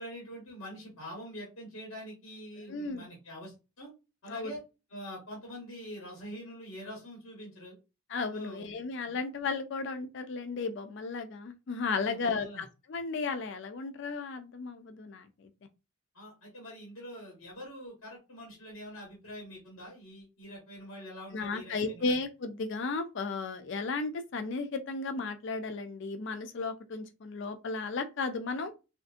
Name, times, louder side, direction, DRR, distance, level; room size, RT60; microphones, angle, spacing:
voice 1, 0.0-3.9 4.2-4.6 4.9-7.7 8.3-8.7 9.1-9.2 12.0-12.6 16.1-22.2, equal, 80° left, 1.3 m, -45 dB
voice 2, 2.7-3.1 4.3-4.6 8.1-15.5 21.3-28.7, left 4 dB, 60° left, 0.4 m, -34 dB
3.4 x 2.5 x 2.4 m
head